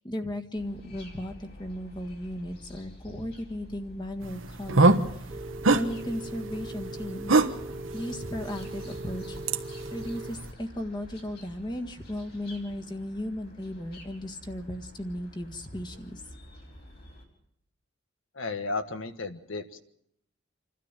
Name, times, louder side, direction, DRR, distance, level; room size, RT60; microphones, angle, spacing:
voice 1, 0.0-5.3 5.7-7.3 7.9-9.4 9.9-16.2, left 1 dB, 20° left, 3 dB, 1.7 m, -36 dB
sound 1, 0.5-17.2, left 1 dB, 50° left, 4.7 m, -49 dB
sound 2, 4.2-10.5, right 3 dB, 75° right, 1.3 m, -27 dB
Telephone, 5.3-10.3, right 2 dB, 30° right, 1.3 m, -41 dB
voice 2, 18.3-19.8, left 3 dB, 70° left, 9 dB, 1.5 m, -34 dB
28.0 x 13.0 x 8.9 m, 0.75 s
head